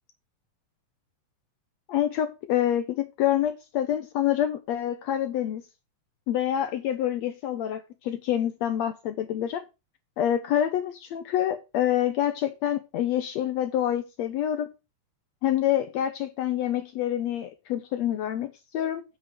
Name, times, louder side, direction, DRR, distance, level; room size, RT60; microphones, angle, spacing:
voice 1, 1.9-5.6 6.3-9.6 10.2-14.7 15.4-19.0, left 11 dB, 70° left, 1.7 m, -27 dB
8.0 x 4.8 x 6.6 m
omnidirectional pair, 3.6 m